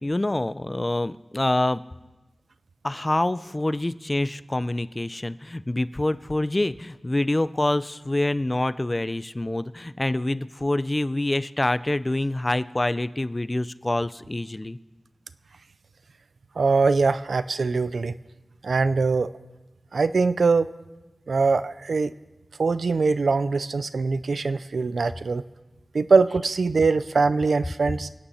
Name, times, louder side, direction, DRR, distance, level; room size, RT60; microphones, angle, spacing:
voice 1, 0.0-1.8 2.8-14.8, left 1 dB, 30° left, 15 dB, 0.5 m, -26 dB
voice 2, 16.6-18.1 18.6-19.3 19.9-20.7 21.3-22.1 22.6-25.4 25.9-28.1, right 4 dB, 90° right, 14 dB, 0.5 m, -22 dB
28.0 x 9.8 x 4.3 m, 1.1 s
cardioid pair, 45°, 0 cm